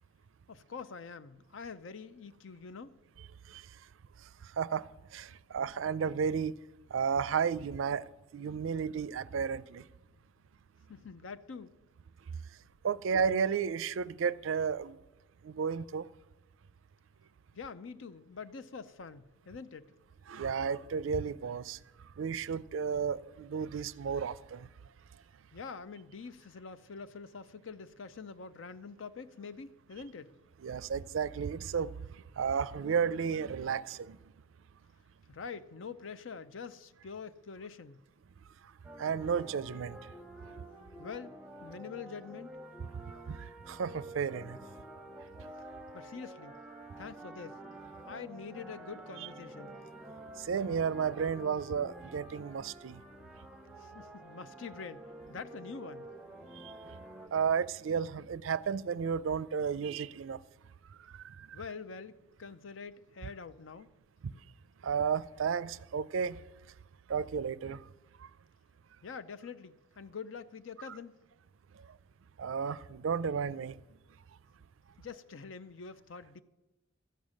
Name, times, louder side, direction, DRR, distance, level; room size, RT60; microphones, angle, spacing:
voice 1, 0.5-2.9 10.9-11.7 17.5-19.9 25.5-30.3 35.3-38.0 41.0-41.3 41.6-42.5 45.9-46.6 47.0-47.6 48.0-49.8 53.8-56.1 61.5-63.9 69.0-71.2 75.0-76.4, left 5 dB, 70° left, 0.6 m, -45 dB
voice 2, 4.2-4.9 5.1-6.6 6.9-9.9 12.8-15.0 15.4-16.1 20.3-21.8 22.2-24.7 30.6-34.2 39.0-40.0 43.3-44.6 45.4-45.5 50.4-53.0 56.5-56.7 57.3-60.4 61.0-61.6 64.8-66.4 67.1-67.8 68.2-68.3 72.4-73.8, right 6 dB, 75° right, 0.4 m, -33 dB
sound 1, 38.8-57.3, right 1 dB, 5° right, 0.9 m, -49 dB
13.0 x 8.9 x 6.4 m
head